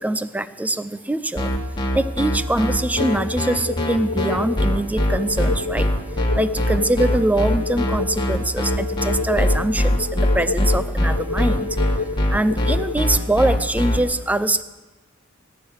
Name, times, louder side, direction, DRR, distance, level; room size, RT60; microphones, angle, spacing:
voice 1, 0.0-1.5 1.9-5.9 6.4-11.8 12.3-14.6, right 1 dB, 10° right, 13 dB, 0.5 m, -23 dB
sound 1, 1.4-14.0, equal, 20° left, 1.9 m, -21 dB
sound 2, 2.9-12.9, left 4 dB, 85° left, 0.7 m, -29 dB
20.0 x 10.5 x 6.6 m, 1.2 s
head